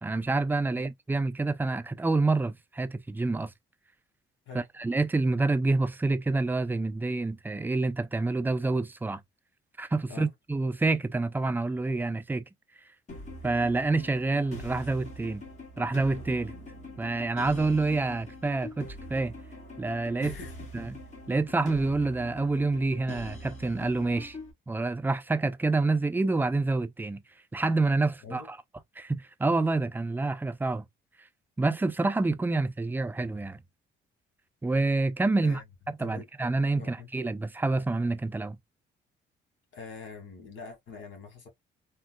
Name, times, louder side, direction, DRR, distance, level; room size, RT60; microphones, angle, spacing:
voice 1, 0.0-3.5 4.5-9.2 9.8-12.4 13.4-15.4 15.8-16.5 17.0-19.3 19.8-20.3 20.7-21.0 21.3-24.4 24.7-27.2 27.5-28.6 29.0-30.8 31.2-31.3 31.6-33.6 34.6-35.6 36.0-38.6, right 3 dB, 10° right, 0.4 m, -27 dB
sound 1, 13.1-24.5, left 1 dB, 35° left, 1.7 m, -43 dB
voice 2, 20.2-20.6 28.2-28.5 35.4-35.6 36.0-36.3 36.8-37.1 39.7-41.5, left 4 dB, 75° left, 1.6 m, -44 dB
3.6 x 2.3 x 2.2 m
cardioid pair, 90°, 20 cm